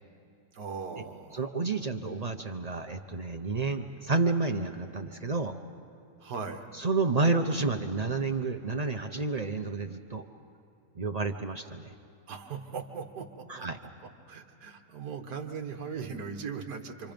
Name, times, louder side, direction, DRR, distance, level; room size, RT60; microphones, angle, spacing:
voice 1, 0.5-1.6 6.2-6.7 12.3-13.7 14.0-17.1, right 5 dB, 70° right, 4 dB, 1.9 m, -39 dB
voice 2, 1.3-5.6 6.8-10.2 11.0-11.9 13.5-13.8, right 3 dB, 50° right, 5 dB, 0.4 m, -30 dB
28.0 x 25.0 x 5.2 m, 2.5 s
omnidirectional pair, 1.8 m